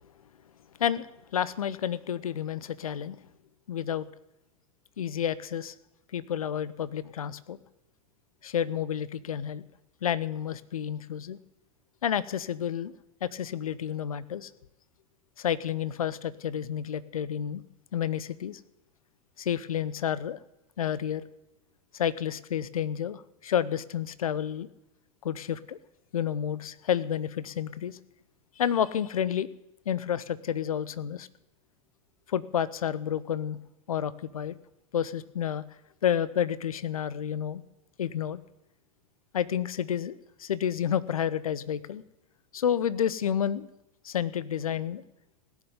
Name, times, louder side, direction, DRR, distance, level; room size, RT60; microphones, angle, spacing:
voice 1, 1.3-3.2 3.7-4.1 5.0-5.7 6.1-7.6 8.4-9.6 10.0-11.4 12.0-12.9 13.2-14.5 15.4-17.6 17.9-18.6 19.4-20.4 20.8-21.2 21.9-24.7 25.2-25.8 26.1-28.0 28.6-29.5 29.9-31.3 32.3-33.6 33.9-34.6 34.9-35.6 36.0-37.6 38.0-38.4 39.3-42.0 42.5-43.7 44.0-45.0, left 9 dB, 75° left, 18 dB, 0.8 m, -30 dB
16.5 x 7.3 x 9.4 m, 0.90 s
figure-of-eight pair, 90°, 18 cm